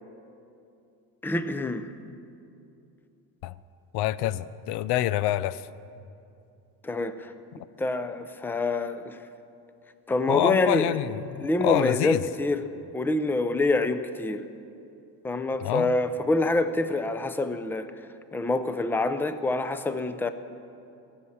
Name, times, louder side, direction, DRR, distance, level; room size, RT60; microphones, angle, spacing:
voice 1, 1.2-1.9 6.8-7.3 7.8-9.2 10.1-11.0 11.4-12.6 12.9-14.4 15.2-17.9 18.3-20.3, left 2 dB, 5° left, 10 dB, 0.5 m, -26 dB
voice 2, 3.9-5.6 10.3-12.2 15.6-15.9, left 14 dB, 80° left, 17 dB, 0.6 m, -27 dB
15.5 x 7.3 x 9.8 m, 2.7 s
cardioid pair, 130°, 39 cm